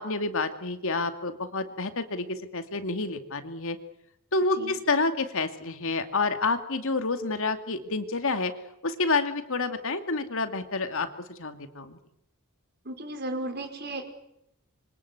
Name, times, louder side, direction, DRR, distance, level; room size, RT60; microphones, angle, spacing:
voice 1, 0.0-3.8 4.3-8.5 8.8-11.1 11.4-12.0, left 3 dB, 65° left, 8 dB, 2.4 m, -28 dB
voice 2, 12.8-14.1, right 1 dB, 50° right, 6 dB, 5.1 m, -34 dB
26.5 x 25.0 x 8.3 m, 0.79 s
head